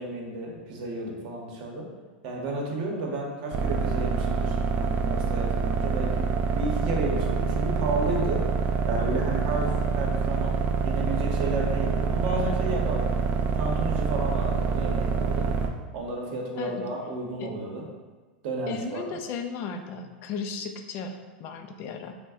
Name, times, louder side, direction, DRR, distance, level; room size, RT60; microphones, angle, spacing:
voice 1, 0.0-1.9 2.2-6.3 6.5-8.4 8.9-10.6 10.8-13.1 13.5-15.5 15.9-17.8 18.4-19.2, right 2 dB, 60° right, -1 dB, 0.7 m, -32 dB
sound 1, 3.5-15.7, right 5 dB, 35° right, 0.3 m, -26 dB
voice 2, 18.7-22.1, left 5 dB, 50° left, 5 dB, 0.3 m, -35 dB
3.2 x 2.0 x 3.5 m, 1.3 s
hypercardioid pair, 105°, 5 cm